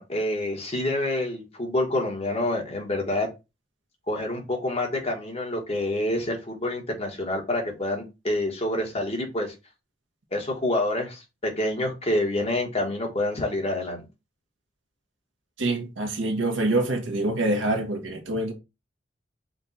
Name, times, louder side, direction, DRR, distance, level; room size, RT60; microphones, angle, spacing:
voice 1, 0.0-3.3 4.1-9.5 10.3-14.1, left 1 dB, 35° left, 1.3 m, -27 dB
voice 2, 15.6-18.5, right 2 dB, 90° right, 1.0 m, -25 dB
5.2 x 2.3 x 4.0 m
head